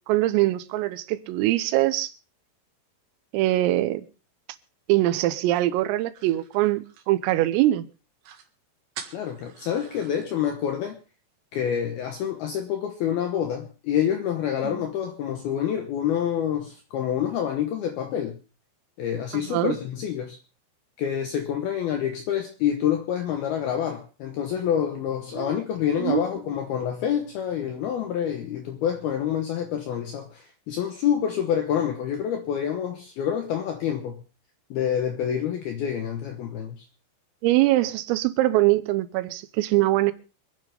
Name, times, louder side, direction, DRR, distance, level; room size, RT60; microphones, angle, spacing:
voice 1, 0.1-2.1 3.3-4.0 4.9-7.9 14.6-14.8 19.3-19.8 25.4-25.6 25.9-26.2 37.4-40.1, right 16 dB, 85° right, 3.5 m, -23 dB
sound 1, 5.2-7.6 7.9-8.0 8.2-8.5 8.9-10.3, right 8 dB, 65° right, 3.7 m, -45 dB
voice 2, 9.1-11.0 11.5-18.4 19.0-20.4 21.0-34.2 34.7-36.9, left 9 dB, 75° left, 2.3 m, -27 dB
26.5 x 9.6 x 3.5 m
omnidirectional pair, 5.9 m